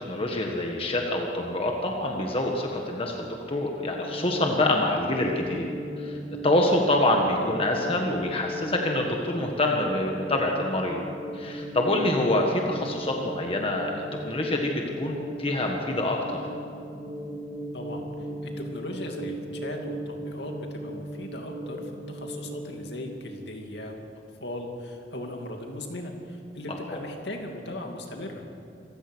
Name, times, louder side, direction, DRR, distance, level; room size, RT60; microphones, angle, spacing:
voice 1, 0.1-5.7 6.0-6.2 6.4-11.0 11.3-16.4 26.9-27.0, left 1 dB, 30° left, 1 dB, 1.7 m, -26 dB
sound 1, 3.5-22.7, equal, 30° right, 5.7 m, -37 dB
voice 2, 17.7-24.0 24.4-28.4, left 1 dB, 65° left, 2 dB, 2.7 m, -38 dB
26.5 x 15.5 x 6.4 m, 2.5 s
head